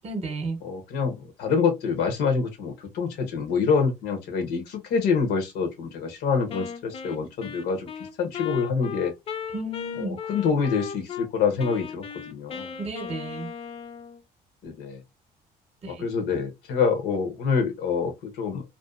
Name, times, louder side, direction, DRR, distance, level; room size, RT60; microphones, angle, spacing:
voice 1, 0.0-0.6 9.5-10.2 12.8-13.5 15.8-16.0, right 2 dB, 40° right, 0.7 m, -32 dB
voice 2, 0.6-7.9 8.2-9.1 10.0-12.7 14.6-15.0 15.9-18.6, left 5 dB, 80° left, 0.8 m, -26 dB
Wind instrument woodwind instrument, 6.5-11.3 11.6-14.2, left 7 dB, 35° left, 0.4 m, -36 dB
2.6 x 2.2 x 2.3 m
cardioid pair, 110°, 17 cm